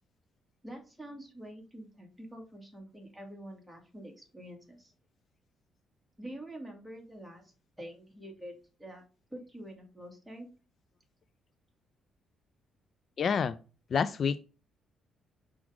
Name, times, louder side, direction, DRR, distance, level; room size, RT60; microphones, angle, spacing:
voice 1, 0.6-4.9 6.2-9.0 9.3-10.5, right 1 dB, ahead, 2.5 m, -46 dB
voice 2, 13.2-13.6 13.9-14.4, left 6 dB, 50° left, 0.4 m, -28 dB
6.2 x 4.8 x 3.6 m
cardioid pair, 90°, 0 cm